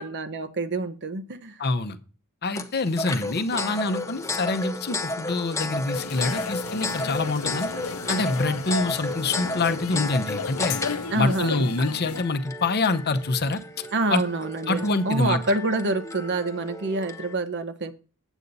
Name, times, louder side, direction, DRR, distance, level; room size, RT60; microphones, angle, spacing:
voice 1, 0.0-1.6 11.1-11.7 13.9-17.9, right 2 dB, 55° right, 11 dB, 0.9 m, -27 dB
voice 2, 1.6-2.0 2.4-7.7 8.1-10.8 11.1-14.2 14.7-15.4, left 3 dB, 50° left, 10 dB, 0.8 m, -26 dB
sound 1, 2.6-17.3, left 2 dB, 15° left, 0.7 m, -33 dB
sound 2, 5.9-12.2, left 6 dB, 85° left, 0.7 m, -34 dB
8.2 x 8.1 x 4.0 m, 0.36 s
head